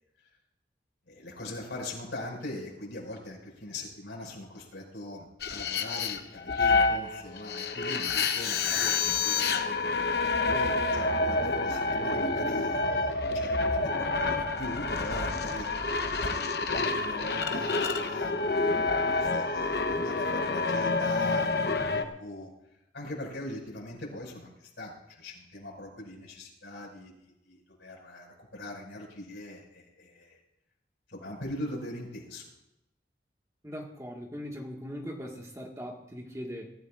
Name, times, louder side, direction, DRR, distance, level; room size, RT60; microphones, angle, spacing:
voice 1, 1.1-15.7 16.3-22.5 22.9-30.4 31.1-32.5, left 1 dB, 85° left, -2 dB, 5.8 m, -41 dB
sound 1, 5.4-22.0, left 3 dB, 60° left, 1.0 m, -28 dB
voice 2, 33.6-36.7, equal, 15° right, 0 dB, 1.8 m, -40 dB
23.0 x 13.5 x 2.5 m, 0.84 s
head